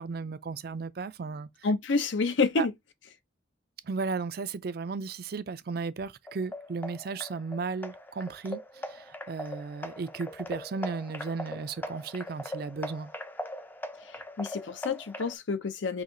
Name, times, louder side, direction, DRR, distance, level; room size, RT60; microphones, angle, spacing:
voice 1, 0.0-1.5 2.6-2.7 3.8-8.6 8.9-13.1, right 4 dB, 55° right, 0.4 m, -35 dB
voice 2, 1.6-2.7 14.4-16.0, left 4 dB, 80° left, 0.6 m, -28 dB
sound 1, 6.3-15.3, left 1 dB, 10° left, 0.4 m, -40 dB
5.6 x 2.8 x 2.6 m
head